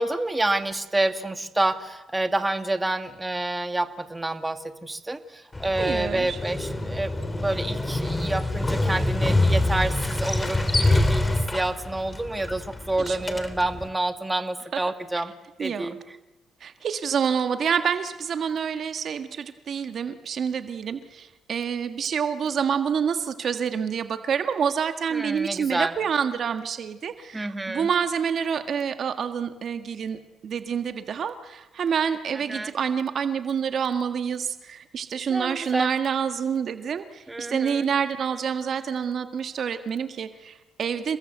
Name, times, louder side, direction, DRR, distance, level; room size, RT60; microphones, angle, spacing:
voice 1, 0.0-15.3 15.6-16.0 25.1-25.9 27.3-27.9 32.5-32.7 35.3-35.9 37.3-37.9, right 2 dB, 15° right, 8 dB, 2.1 m, -28 dB
Motorcycle, 5.5-13.9, left 2 dB, 20° left, 3.3 m, -26 dB
voice 2, 5.8-6.4 13.0-13.2 14.7-14.8 15.6-15.9 16.6-41.2, right 7 dB, 55° right, 8 dB, 1.7 m, -27 dB
29.5 x 21.0 x 8.1 m, 1.0 s
cardioid pair, 90°, 0 cm